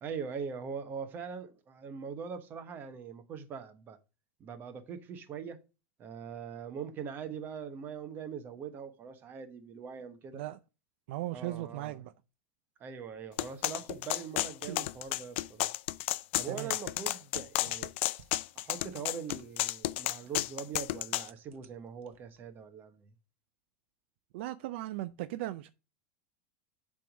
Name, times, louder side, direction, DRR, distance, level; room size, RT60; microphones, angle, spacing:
voice 1, 0.0-4.0 4.4-5.6 6.0-10.4 11.3-12.0 12.8-15.7 16.4-17.9 18.6-23.1, right 6 dB, 30° right, 1.1 m, -42 dB
voice 2, 11.1-12.1 16.5-16.7 24.3-25.7, right 15 dB, 65° right, 0.4 m, -37 dB
sound 1, 13.1-22.6, right 7 dB, 85° right, 0.9 m, -55 dB
sound 2, 13.4-21.3, left 17 dB, 70° left, 0.4 m, -32 dB
7.7 x 3.6 x 6.1 m
supercardioid pair, 145°, 7 cm